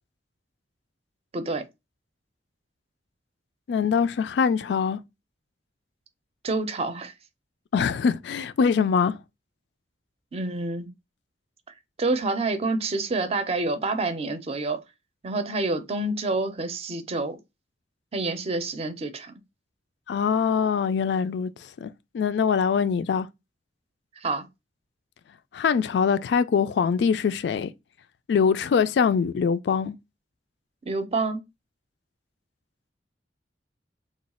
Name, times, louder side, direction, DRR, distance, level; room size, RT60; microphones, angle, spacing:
voice 1, 1.3-1.6 6.4-7.1 10.3-10.9 12.0-14.8 15.2-17.4 18.1-19.3 24.2-24.5 30.9-31.5, right 3 dB, 35° right, 0.5 m, -28 dB
voice 2, 3.7-5.0 7.7-9.2 20.1-21.5 21.8-21.9 22.1-23.3 25.5-27.7 28.3-29.9, left 6 dB, 70° left, 0.3 m, -23 dB
3.1 x 2.3 x 4.1 m
head